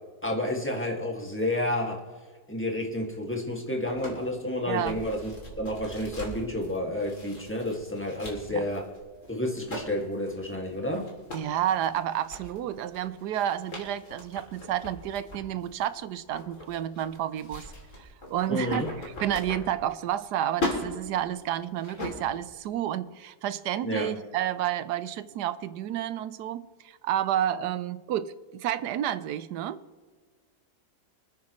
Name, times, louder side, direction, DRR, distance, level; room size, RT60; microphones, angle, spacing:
voice 1, 0.2-2.0 2.5-8.9 9.3-11.0 18.5-18.9 23.8-24.1, left 1 dB, 5° left, 0 dB, 2.1 m, -30 dB
sound 1, 3.8-20.3 20.5-22.5, left 2 dB, 50° left, 3.4 m, -40 dB
voice 2, 4.7-5.0 8.5-8.6 11.3-17.7 18.0-29.8, right 11 dB, 80° right, 15 dB, 1.3 m, -30 dB
25.5 x 9.7 x 3.2 m, 1.5 s
omnidirectional pair, 1.8 m